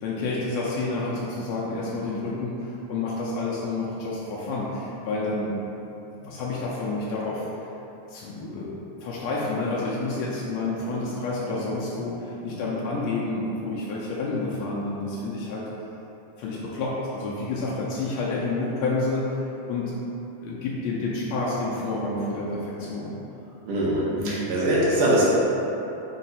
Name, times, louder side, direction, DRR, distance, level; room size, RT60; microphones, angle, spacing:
voice 1, 0.0-5.6 6.2-7.5 8.1-8.7 9.0-15.7 16.4-19.4 19.7-19.9 20.4-23.2 24.2-24.4, left 3 dB, 90° left, -6 dB, 1.5 m, -29 dB
voice 2, 23.7-25.3, right 1 dB, 85° right, -7 dB, 2.5 m, -22 dB
5.7 x 2.3 x 4.1 m, 3.0 s
omnidirectional pair, 3.6 m